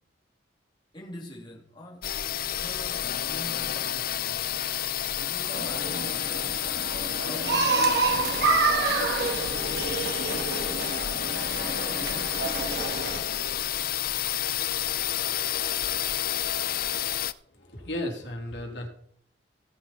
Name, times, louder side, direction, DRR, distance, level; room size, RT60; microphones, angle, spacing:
voice 1, 0.9-2.2 2.5-4.5 5.2-6.6 7.2-8.2 8.7-13.1, left 1 dB, 25° left, 2.7 m, -44 dB
sound 1, 2.0-17.3, left 11 dB, 55° left, 0.6 m, -30 dB
sound 2, 5.5-13.2, right 4 dB, 65° right, 2.4 m, -28 dB
voice 2, 17.7-18.9, left 1 dB, 80° left, 3.1 m, -34 dB
16.5 x 9.9 x 4.2 m
head